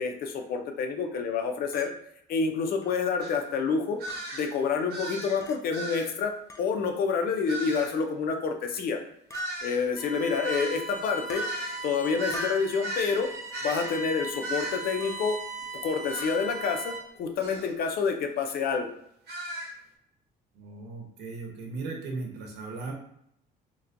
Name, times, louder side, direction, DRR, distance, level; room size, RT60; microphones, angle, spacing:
voice 1, 0.0-1.9 2.3-4.0 4.3-9.0 9.6-11.4 11.8-13.3 13.6-15.4 15.8-18.9, left 5 dB, 65° left, 5 dB, 0.6 m, -28 dB
Chink clink, 1.7-1.9 2.8-2.9 4.1-4.2 5.4-5.6 6.5-6.7 7.8-8.1 9.3-9.5 10.5-10.7 11.3-11.5 12.3-12.7 13.9-14.0 15.0-15.2 16.2-16.3, left 2 dB, 20° left, 0.4 m, -42 dB
sound 1, 3.2-3.3 4.0-4.5 4.9-5.4 5.7-6.1 7.5-7.9 9.3-13.2 13.5-14.0 14.4-14.8 16.1-16.4 17.4-17.7 19.3-19.7, right 1 dB, 65° right, 1.1 m, -36 dB
Bowed string instrument, 10.0-17.2, right 2 dB, 20° right, 0.9 m, -39 dB
voice 2, 20.5-22.9, right 3 dB, 90° right, 1 dB, 0.9 m, -37 dB
3.0 x 2.2 x 3.7 m, 0.74 s
cardioid pair, 110°, 17 cm